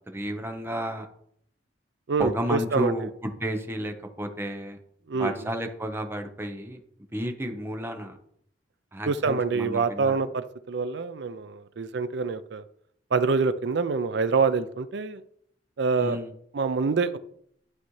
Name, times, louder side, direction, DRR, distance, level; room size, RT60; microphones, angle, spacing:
voice 1, 0.1-1.1 2.2-4.8 5.2-6.8 7.1-8.2 8.9-10.3 16.0-16.3, equal, 15° right, 5 dB, 0.8 m, -32 dB
voice 2, 2.1-3.1 5.1-5.5 9.1-12.6 13.1-15.2 15.8-16.2 16.5-17.2, right 4 dB, 70° right, 13 dB, 0.5 m, -26 dB
11.5 x 4.2 x 3.2 m, 0.68 s
head